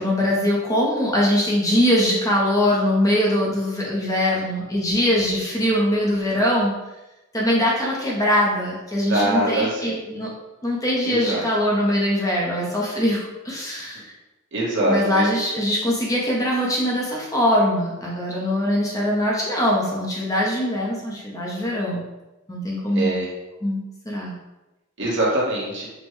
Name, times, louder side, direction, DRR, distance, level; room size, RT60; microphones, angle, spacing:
voice 1, 0.0-6.7 7.3-10.3 10.6-14.1 14.8-22.0 22.5-23.2 23.6-24.3, equal, 15° left, -4 dB, 0.7 m, -22 dB
voice 2, 9.0-10.0 11.0-11.5 14.5-15.3 22.9-23.3 25.0-25.9, right 1 dB, 55° right, -4 dB, 1.2 m, -23 dB
5.2 x 2.2 x 3.1 m, 1.0 s
head